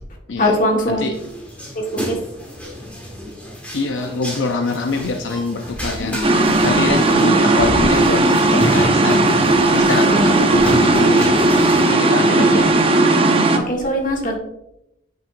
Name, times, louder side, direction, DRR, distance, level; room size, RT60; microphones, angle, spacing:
voice 1, 0.4-1.1 1.7-2.2 6.0-6.6 7.2-7.6 10.1-10.4 12.3-12.7 13.5-14.4, equal, 45° left, 1 dB, 1.6 m, -22 dB
sound 1, 1.1-11.9, equal, 5° left, 1.7 m, -30 dB
voice 2, 3.7-9.3 9.7-11.4 11.8-12.7, left 3 dB, 80° left, 5 dB, 0.6 m, -24 dB
sound 2, 6.2-13.6, right 2 dB, 30° right, 0.7 m, -15 dB
8.7 x 6.0 x 2.6 m, 0.82 s
head